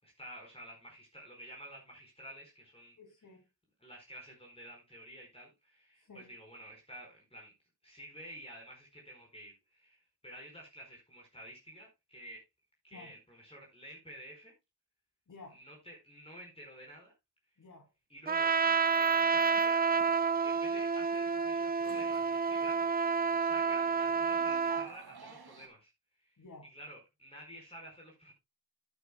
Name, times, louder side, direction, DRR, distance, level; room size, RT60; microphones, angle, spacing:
voice 1, 0.0-3.0 3.8-7.5 7.8-12.4 12.8-14.5 15.5-17.1 18.1-18.5 18.9-20.0 20.4-23.1 23.4-25.9 26.2-26.3 26.6-28.3, equal, 15° left, 4.7 m, -51 dB
voice 2, 3.0-3.4 6.0-6.3 12.9-13.1 15.3-15.6 17.6-17.9 18.6-18.8 26.4-26.7, left 3 dB, 50° left, 3.0 m, -53 dB
Trumpet, 18.3-24.9, right 5 dB, 25° right, 0.4 m, -29 dB
sound 1, 18.8-25.7, right 5 dB, 70° right, 2.0 m, -53 dB
12.5 x 9.3 x 2.2 m
cardioid pair, 70°, 38 cm